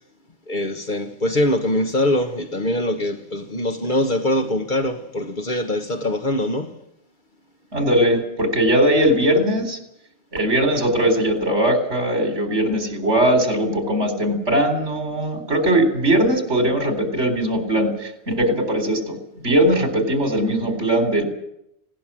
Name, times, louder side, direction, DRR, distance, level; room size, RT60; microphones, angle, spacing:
voice 1, 0.5-6.8, left 1 dB, 45° left, 1.4 m, -23 dB
voice 2, 7.7-9.8 10.3-19.2 19.4-21.2, right 1 dB, 85° right, 4.4 m, -20 dB
19.5 x 17.5 x 7.5 m
omnidirectional pair, 1.2 m